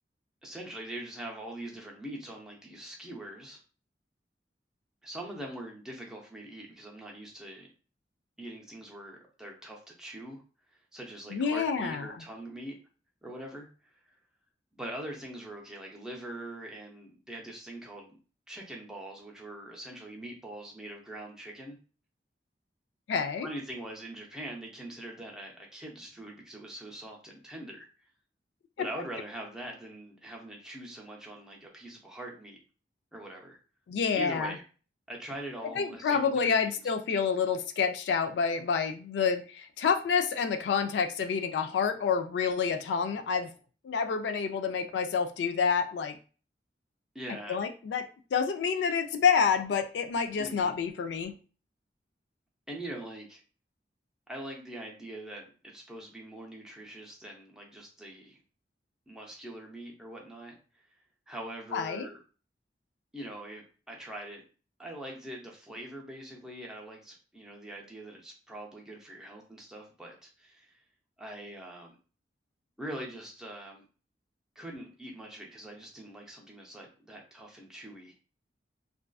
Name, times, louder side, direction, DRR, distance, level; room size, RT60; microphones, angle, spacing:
voice 1, 0.4-3.6 5.0-7.7 8.4-10.4 10.9-12.8 13.2-14.0 14.8-18.2 18.5-21.8 23.4-27.9 28.8-32.6 33.1-33.6 34.2-34.6 35.1-36.8 47.1-47.6 50.4-50.8 52.7-53.4 54.3-58.4 59.1-60.8 61.3-62.2 63.1-64.4 64.8-70.8 71.2-72.0 72.8-73.8 74.6-78.1, right 1 dB, 5° right, -1 dB, 0.5 m, -43 dB
voice 2, 11.3-12.0 23.1-23.5 28.8-28.9 33.9-34.6 35.8-43.5 43.8-46.2 47.5-48.0 48.3-51.3 61.7-62.1, left 6 dB, 80° left, 8 dB, 0.3 m, -28 dB
2.4 x 2.3 x 2.3 m, 0.37 s
head